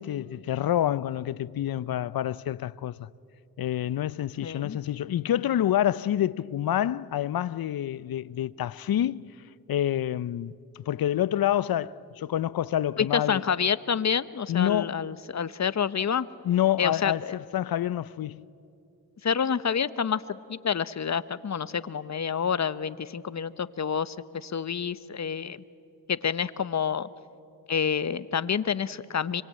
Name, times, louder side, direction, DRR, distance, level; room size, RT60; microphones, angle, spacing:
voice 1, 0.0-3.1 3.6-9.3 9.7-13.4 14.5-15.0 16.4-18.4, left 11 dB, 60° left, 0.7 m, -27 dB
voice 2, 4.4-4.8 13.0-16.3 16.8-17.3 19.2-25.6 26.1-27.1 27.7-29.4, left 7 dB, 45° left, 1.0 m, -28 dB
25.5 x 24.0 x 8.9 m
supercardioid pair, 50°, 40 cm